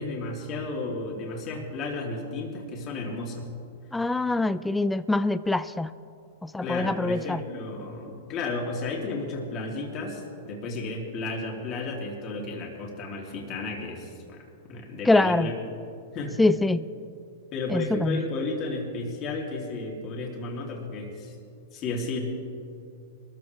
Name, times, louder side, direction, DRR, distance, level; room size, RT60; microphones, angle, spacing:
voice 1, 0.0-3.5 6.6-14.4 14.7-15.6 16.1-16.4 17.5-21.3 21.7-22.2, left 3 dB, 35° left, -1 dB, 3.0 m, -33 dB
voice 2, 3.9-5.9 6.4-7.4 15.1-15.5 16.4-16.8 17.7-18.2, left 2 dB, 5° left, 14 dB, 0.3 m, -24 dB
21.5 x 14.0 x 3.4 m, 2.6 s
hypercardioid pair, 130°, 0 cm